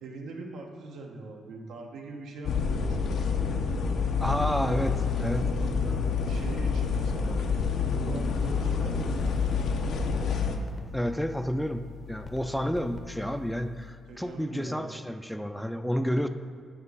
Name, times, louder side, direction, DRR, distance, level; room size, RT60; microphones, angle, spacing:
voice 1, 0.0-3.8 5.8-6.0 6.2-7.4 8.0-9.1 14.1-14.9, right 3 dB, 85° right, 1 dB, 0.9 m, -42 dB
sound 1, 2.4-10.5, left 5 dB, 75° left, 0.6 m, -28 dB
voice 2, 4.2-5.5 10.9-16.3, equal, ahead, 9 dB, 0.3 m, -30 dB
sound 2, 4.4-14.6, left 7 dB, 35° left, 0.7 m, -45 dB
8.8 x 3.5 x 5.3 m, 2.1 s
cardioid pair, 95°, 0 cm